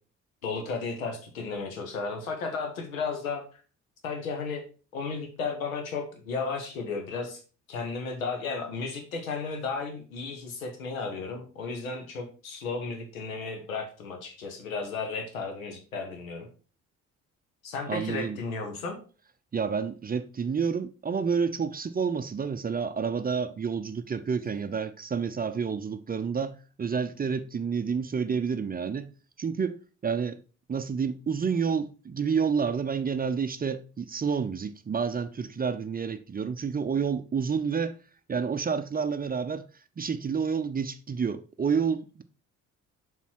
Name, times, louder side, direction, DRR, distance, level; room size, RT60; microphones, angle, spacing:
voice 1, 0.4-3.6 4.0-4.6 4.9-7.4 7.7-16.5 17.6-19.0, left 4 dB, 80° left, 1.2 m, -34 dB
voice 2, 17.9-18.4 19.5-29.1 29.4-30.4 30.7-38.0 38.3-39.7 40.0-42.2, right 6 dB, 20° right, 0.6 m, -29 dB
7.0 x 4.2 x 4.4 m
figure-of-eight pair, 45°, 41 cm